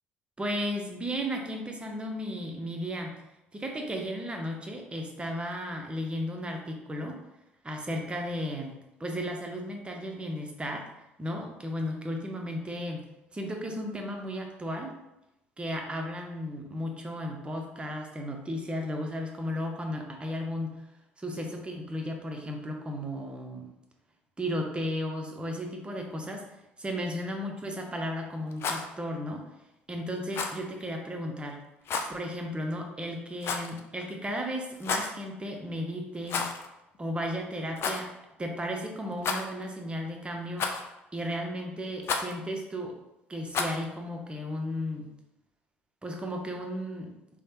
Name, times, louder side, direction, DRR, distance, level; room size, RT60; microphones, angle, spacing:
voice 1, 0.4-3.1 3.5-7.2 7.6-10.9 11.2-15.0 15.6-20.7 21.2-23.7 24.4-26.5 26.8-29.4 29.9-31.6 32.1-36.5 37.0-38.1 38.4-40.7 41.1-43.0 43.3-45.1 46.0-47.1, equal, 20° right, 2 dB, 0.6 m, -34 dB
Rattle, 28.5-28.9 30.3-30.6 31.9-32.1 33.4-33.8 34.7-35.2 36.2-36.7 36.9-37.0 37.8-38.0 39.2-39.7 40.6-41.0 42.0-42.3 43.5-43.8, left 5 dB, 45° left, 0.3 m, -31 dB
3.1 x 2.1 x 2.9 m, 0.88 s
figure-of-eight pair, 55°, 6 cm